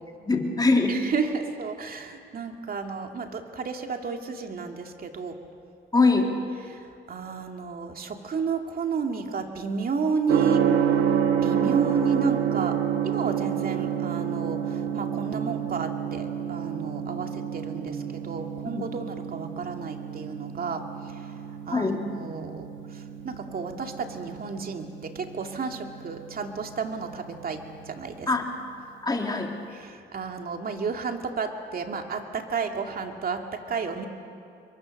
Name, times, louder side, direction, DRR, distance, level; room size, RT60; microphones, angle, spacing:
voice 1, 0.2-1.0 5.9-6.4 18.7-18.8 21.7-22.0 28.3-28.4 29.0-29.5, left 3 dB, 20° left, 1 dB, 3.5 m, -22 dB
voice 2, 0.9-5.4 6.7-10.6 11.4-12.8 13.0-21.3 21.7-28.3 29.8-34.1, right 5 dB, 50° right, 4 dB, 2.5 m, -32 dB
Gong, 10.3-28.2, right 9 dB, 80° right, 1.7 m, -29 dB
27.5 x 23.0 x 6.6 m, 2.4 s
cardioid pair, 90°, 20 cm